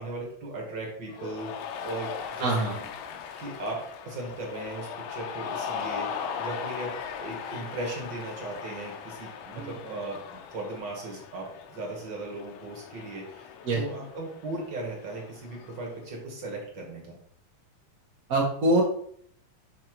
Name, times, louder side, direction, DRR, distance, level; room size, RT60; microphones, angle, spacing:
voice 1, 0.0-1.5 1.8-6.9 7.2-17.1, right 2 dB, 45° right, -1 dB, 1.7 m, -37 dB
Cheering, 1.1-15.9, left 7 dB, 80° left, 2.1 m, -39 dB
voice 2, 2.4-2.7 9.6-9.7 13.6-13.8 18.3-18.8, right 2 dB, 65° right, -3 dB, 0.8 m, -24 dB
6.5 x 4.5 x 4.6 m, 0.63 s
omnidirectional pair, 4.0 m